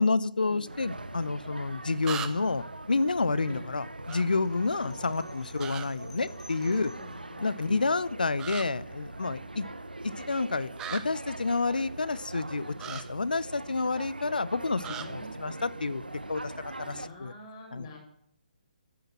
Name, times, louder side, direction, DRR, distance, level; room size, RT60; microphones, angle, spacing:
voice 1, 0.0-6.9 7.4-9.7 10.0-16.0 16.3-17.3 17.7-18.0, left 3 dB, 75° left, 17 dB, 0.8 m, -29 dB
sound 1, 0.7-17.1, right 2 dB, 85° right, 1.2 m, -42 dB
sound 2, 0.9-1.0 2.0-2.6 4.1-4.2 5.6-5.9 8.4-8.6 10.8-11.0 12.8-13.0 14.8-15.0, right 9 dB, 15° right, 1.0 m, -37 dB
sound 3, 4.6-7.1, left 2 dB, 5° left, 3.1 m, -55 dB
voice 2, 4.8-5.3 6.6-7.9 14.8-15.5 16.8-18.0, left 2 dB, 25° left, -5 dB, 5.2 m, -47 dB
14.5 x 10.0 x 7.5 m, 0.71 s
figure-of-eight pair, 140°, 5 cm